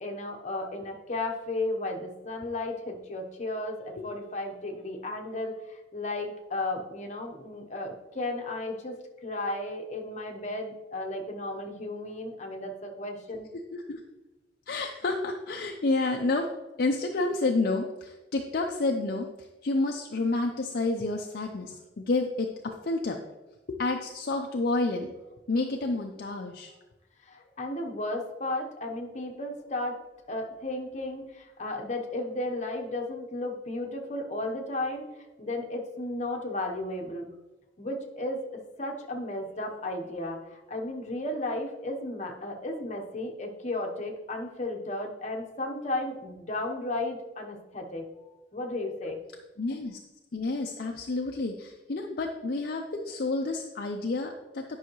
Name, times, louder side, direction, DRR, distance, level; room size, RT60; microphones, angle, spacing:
voice 1, 0.0-13.5 27.2-30.0 30.3-35.1 35.4-37.3 37.8-48.1 48.5-49.2, left 2 dB, 40° left, 2 dB, 1.0 m, -34 dB
voice 2, 14.7-16.5 16.8-19.3 19.6-23.2 23.7-25.1 25.5-26.7 49.6-50.0 50.3-54.6, left 2 dB, 55° left, 2 dB, 0.5 m, -29 dB
10.5 x 5.6 x 3.1 m, 1.1 s
head